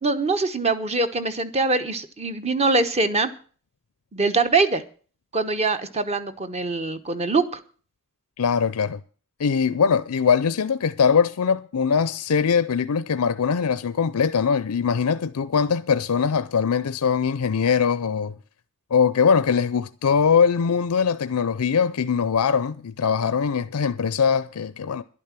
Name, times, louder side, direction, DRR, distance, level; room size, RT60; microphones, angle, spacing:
voice 1, 0.0-3.3 4.1-4.8 5.3-7.6, right 3 dB, 30° right, 1.0 m, -23 dB
voice 2, 8.4-9.0 9.4-18.3 18.9-25.0, left 6 dB, 85° left, 0.5 m, -22 dB
11.5 x 8.8 x 7.4 m
head